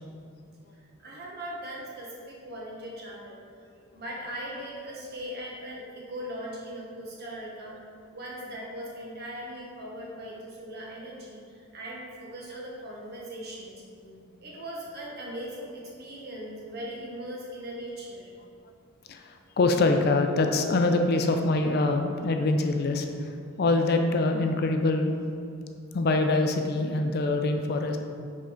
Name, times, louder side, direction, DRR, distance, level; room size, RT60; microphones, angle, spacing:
voice 1, 1.0-3.4 3.9-7.8 8.1-13.8 14.4-18.3, equal, 50° right, -4 dB, 1.3 m, -39 dB
voice 2, 19.1-25.2 25.9-28.0, left 2 dB, 50° left, 5 dB, 0.4 m, -25 dB
5.6 x 3.8 x 5.0 m, 2.3 s
head